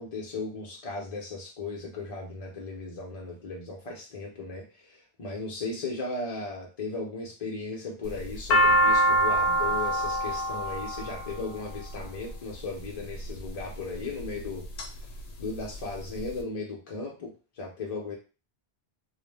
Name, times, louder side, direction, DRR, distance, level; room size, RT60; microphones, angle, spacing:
voice 1, 0.0-14.7 15.4-18.2, left 3 dB, 45° left, -2 dB, 0.6 m, -36 dB
sound 1, 8.1-12.3 13.1-13.6 14.2-14.9 15.2-15.3 15.5-16.3, right 1 dB, 75° left, 0.8 m, -24 dB
2.5 x 2.0 x 3.2 m, 0.33 s
omnidirectional pair, 1.1 m